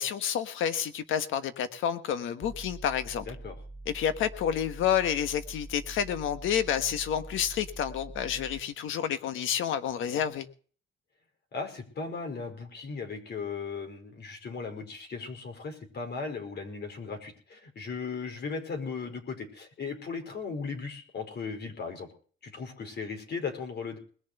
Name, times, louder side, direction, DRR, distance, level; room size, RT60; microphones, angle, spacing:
voice 1, 0.0-3.2 3.8-10.5, left 9 dB, 85° left, 11 dB, 1.4 m, -29 dB
sound 1, 2.4-8.6, right 2 dB, 20° right, 0.9 m, -45 dB
voice 2, 11.5-22.1 22.4-24.0, left 5 dB, 55° left, 4 dB, 5.0 m, -37 dB
20.5 x 7.2 x 6.8 m, 0.43 s
cardioid pair, 90°, 20 cm